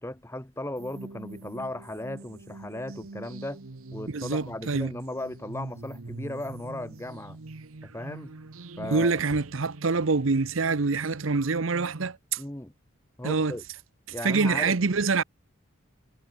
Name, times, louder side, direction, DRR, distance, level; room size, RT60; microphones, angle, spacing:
voice 1, 0.0-3.6 3.9-7.4 7.8-8.3 8.8-9.2 12.4-12.7 13.2-13.6 14.1-14.8, left 1 dB, 10° left, 1.3 m, -36 dB
sound 1, 0.8-12.1, right 2 dB, 85° right, 1.1 m, -43 dB
voice 2, 4.1-4.9 8.9-12.4 13.2-13.5 14.2-15.2, right 4 dB, 70° right, 0.8 m, -25 dB
head